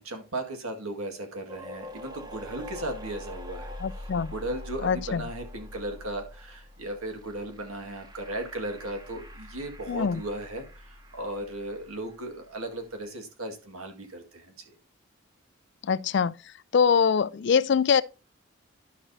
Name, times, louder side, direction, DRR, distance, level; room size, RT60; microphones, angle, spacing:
voice 1, 0.0-14.7, right 1 dB, 85° right, 1.9 m, -36 dB
sound 1, 1.5-12.6, left 1 dB, 20° right, 0.8 m, -44 dB
voice 2, 3.8-4.3 4.8-5.2 9.9-10.2 15.8-16.3 16.7-18.0, left 6 dB, 55° left, 0.3 m, -23 dB
11.5 x 6.0 x 2.7 m
head